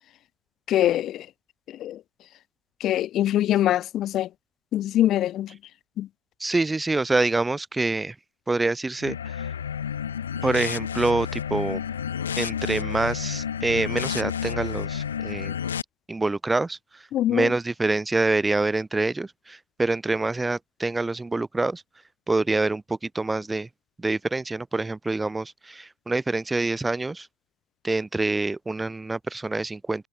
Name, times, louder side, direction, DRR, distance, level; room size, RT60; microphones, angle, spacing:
voice 1, 0.7-1.3 1.7-2.0 2.8-4.3 4.7-5.6 6.0-6.1 17.1-17.5, left 12 dB, 35° left, 1.5 m, -23 dB
voice 2, 6.4-8.2 8.5-9.5 10.4-11.8 12.4-15.6 16.1-21.8 22.3-23.7 24.0-27.3 27.8-30.1, right 2 dB, 10° right, 4.4 m, -26 dB
sound 1, 9.0-15.8, left 8 dB, 75° left, 7.1 m, -30 dB
figure-of-eight pair, 95°, 0 cm